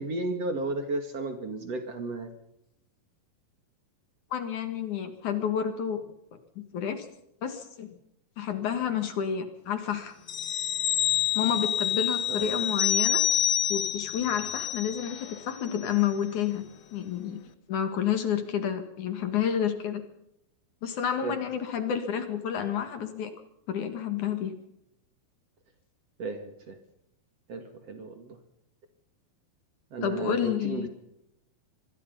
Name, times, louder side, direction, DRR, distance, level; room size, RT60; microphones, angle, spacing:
voice 1, 0.0-2.3 12.3-12.5 21.2-21.3 26.2-26.8 27.5-28.4 29.9-30.9, right 2 dB, 45° right, 7 dB, 2.8 m, -34 dB
voice 2, 4.3-6.0 6.6-7.1 7.4-7.9 8.4-10.1 11.3-13.2 13.7-16.6 16.9-17.4 17.7-20.0 20.8-23.3 23.7-24.6 30.0-30.9, left 8 dB, 60° left, 8 dB, 2.9 m, -30 dB
sound 1, 10.3-15.4 15.7-15.9, left 10 dB, 85° left, 1.0 m, -27 dB
25.5 x 21.0 x 5.4 m, 0.81 s
omnidirectional pair, 4.4 m